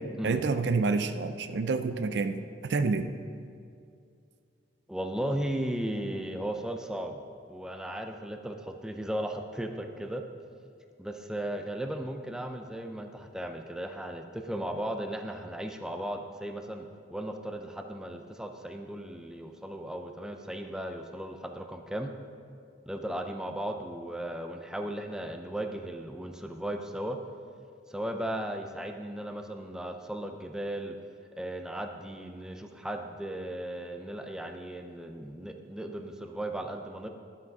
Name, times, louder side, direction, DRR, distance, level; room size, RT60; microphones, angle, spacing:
voice 1, 0.2-2.4 2.7-3.1, right 4 dB, 65° right, 10 dB, 0.4 m, -28 dB
voice 2, 4.9-7.2 7.5-10.2 11.0-22.1 22.9-27.2 27.9-31.0 31.4-37.1, right 1 dB, 5° right, 5 dB, 0.4 m, -36 dB
10.5 x 5.8 x 5.3 m, 2.4 s
head